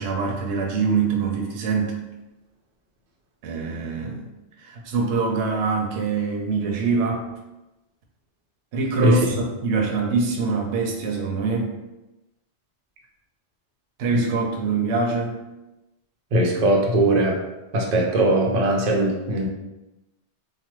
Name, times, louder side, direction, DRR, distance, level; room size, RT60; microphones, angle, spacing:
voice 1, 0.0-1.9 3.4-4.3 4.6-7.3 8.7-11.7 14.0-15.4, right 4 dB, 75° right, 0 dB, 0.8 m, -24 dB
voice 2, 16.3-17.4 17.7-19.5, right 1 dB, 55° right, -1 dB, 0.5 m, -20 dB
3.1 x 2.1 x 3.0 m, 0.98 s
omnidirectional pair, 1.2 m